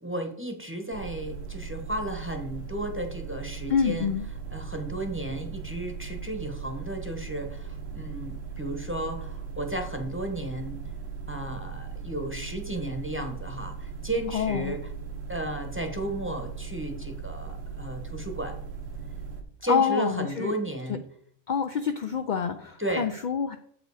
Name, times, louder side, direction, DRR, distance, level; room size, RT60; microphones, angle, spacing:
voice 1, 0.0-4.1 4.5-10.8 11.3-14.8 15.3-18.6 19.6-21.0 22.8-23.1, right 1 dB, 10° right, 4 dB, 0.8 m, -33 dB
sound 1, 0.9-19.4, right 5 dB, 80° right, 1.4 m, -38 dB
voice 2, 3.7-4.2 14.3-14.8 19.7-20.6 21.5-23.6, left 6 dB, 70° left, 7 dB, 0.4 m, -27 dB
7.5 x 4.9 x 4.8 m, 0.67 s
omnidirectional pair, 1.3 m